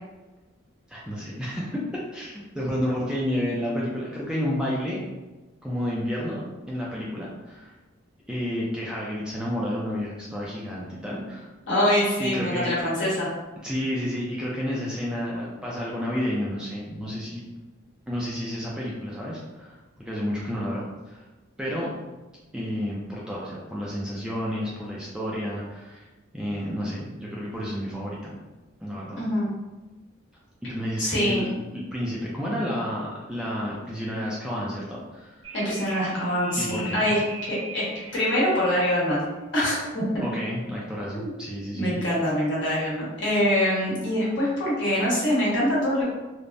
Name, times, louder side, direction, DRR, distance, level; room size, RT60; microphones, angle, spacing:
voice 1, 0.9-1.8 2.1-5.0 5.6-6.4 6.7-7.7 8.3-11.5 12.2-12.9 13.6-17.4 18.1-21.2 21.6-21.9 22.5-26.1 26.3-28.3 28.8-29.2 30.6-35.4 36.6-37.1 40.2-42.0, equal, 5° right, -6 dB, 0.3 m, -30 dB
voice 2, 11.7-13.3 29.1-29.5 31.0-31.5 35.5-37.2 37.5-39.2 39.5-40.2 41.1-41.3 41.7-46.0, equal, 60° left, -7 dB, 1.1 m, -24 dB
sound 1, 35.4-38.9, right 2 dB, 70° right, 0.8 m, -40 dB
3.2 x 2.0 x 2.5 m, 1.2 s
head